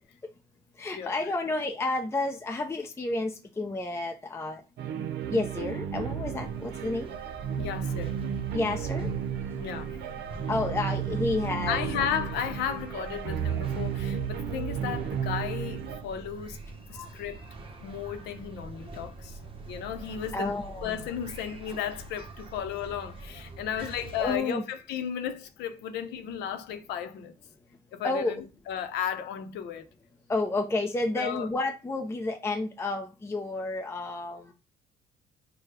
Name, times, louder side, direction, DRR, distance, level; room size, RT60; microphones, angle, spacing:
voice 1, 0.8-4.6 5.3-7.2 8.5-9.1 10.5-11.8 16.9-17.1 20.3-21.0 23.8-23.9 24.2-24.6 28.0-28.3 30.3-34.5, left 2 dB, 15° left, 0.6 m, -30 dB
sound 1, 4.8-16.0, right 8 dB, 75° right, 0.7 m, -33 dB
sound 2, 6.4-24.4, right 3 dB, 30° right, 0.9 m, -44 dB
voice 2, 7.6-8.2 9.6-9.9 11.7-16.6 16.9-17.4 17.8-19.4 19.7-20.5 20.8-27.3 27.9-29.9 31.2-31.5, left 9 dB, 80° left, 0.7 m, -34 dB
4.5 x 2.2 x 4.7 m
cardioid pair, 110°, 17 cm